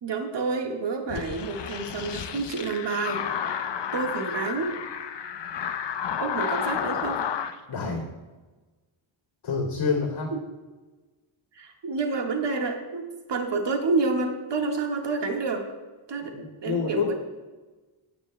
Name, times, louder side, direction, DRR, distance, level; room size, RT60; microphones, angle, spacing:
voice 1, 0.0-3.2 3.9-4.7 6.2-7.3 10.3-10.4 11.5-15.6 16.1-17.1, right 4 dB, 55° right, 2 dB, 1.6 m, -29 dB
sound 1, 1.1-7.5, left 8 dB, 55° left, 0.8 m, -31 dB
voice 2, 7.7-8.1 9.4-10.3 16.3-17.1, left 5 dB, 75° left, -3 dB, 2.7 m, -27 dB
16.5 x 9.6 x 2.2 m, 1.3 s
cardioid pair, 90°, 50 cm